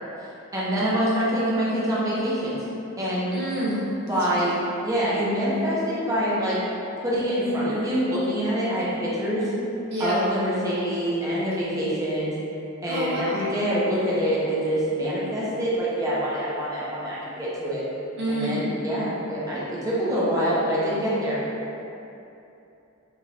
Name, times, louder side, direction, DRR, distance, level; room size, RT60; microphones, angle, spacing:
voice 1, 0.5-2.6 3.0-3.3 4.1-4.5 4.8-6.6 7.0-9.4 10.0-12.3 12.8-17.8 18.3-21.4, equal, 15° right, -8 dB, 0.7 m, -25 dB
voice 2, 3.3-3.8 9.9-10.2 12.9-13.4 18.2-18.6, equal, 50° right, -5 dB, 0.5 m, -27 dB
3.5 x 2.6 x 3.3 m, 2.8 s
head